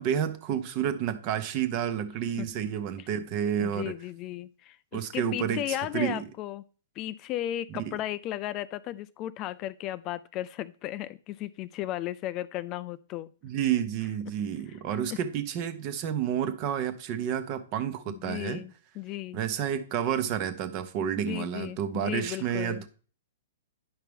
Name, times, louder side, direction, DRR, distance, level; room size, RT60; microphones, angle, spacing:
voice 1, 0.0-3.9 4.9-6.3 7.8-8.0 13.4-18.6 19.3-22.9, right 9 dB, 40° right, 1.0 m, -30 dB
voice 2, 3.6-6.6 7.0-13.3 15.1-15.2 18.1-19.4 21.3-22.8, left 14 dB, 35° left, 0.3 m, -35 dB
9.6 x 5.7 x 3.5 m
hypercardioid pair, 115°, 0 cm